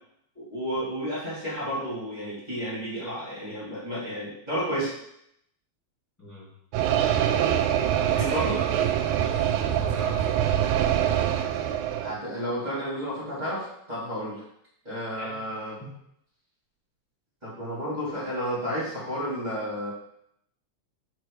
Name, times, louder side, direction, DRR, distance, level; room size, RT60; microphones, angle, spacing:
voice 1, 0.3-4.9 8.1-8.6 12.0-14.4 14.8-15.8 17.4-19.9, equal, 15° right, -9 dB, 2.5 m, -31 dB
voice 2, 6.2-6.5 7.9-8.9 9.2-10.4 15.2-15.4 15.8-15.9, equal, 5° left, -9 dB, 1.7 m, -39 dB
sound 1, 6.7-12.2, right 10 dB, 80° right, 1.9 m, -24 dB
4.9 x 4.4 x 4.9 m, 0.74 s
omnidirectional pair, 3.3 m